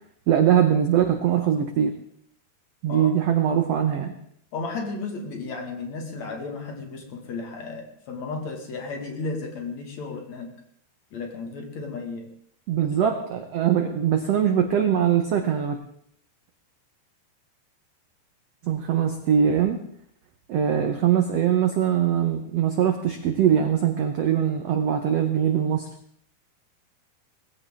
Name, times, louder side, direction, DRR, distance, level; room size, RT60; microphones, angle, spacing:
voice 1, 0.3-2.0 2.8-4.1 12.7-15.8 18.6-19.8 20.5-25.9, right 9 dB, 85° right, 6 dB, 1.4 m, -22 dB
voice 2, 4.5-10.5 11.1-12.3 13.0-13.1, left 3 dB, 50° left, 3 dB, 2.9 m, -34 dB
20.5 x 15.0 x 3.7 m, 0.66 s
omnidirectional pair, 4.4 m